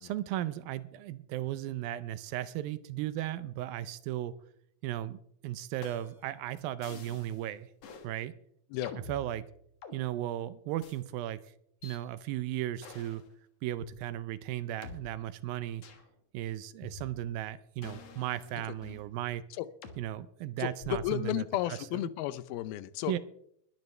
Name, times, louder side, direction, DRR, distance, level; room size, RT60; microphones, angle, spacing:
voice 1, 0.0-4.3 4.8-7.7 8.0-8.3 9.1-9.4 9.9-11.4 11.8-13.2 13.6-15.8 16.3-19.4 20.0-22.0 23.1-23.2, right 13 dB, 80° right, 2.4 m, -36 dB
sound 1, 5.8-6.3 6.8-7.4 7.8-8.1 8.8-10.0 10.8-11.0 11.8-12.0 12.8-13.2 13.8-13.9 14.8-15.0 15.8-16.1 16.8-17.4 17.8-19.1 19.8-20.0 20.8-21.2, left 4 dB, 55° left, 2.2 m, -47 dB
voice 2, 20.6-23.2, left 13 dB, 85° left, 2.6 m, -33 dB
21.0 x 12.0 x 3.3 m
omnidirectional pair, 4.3 m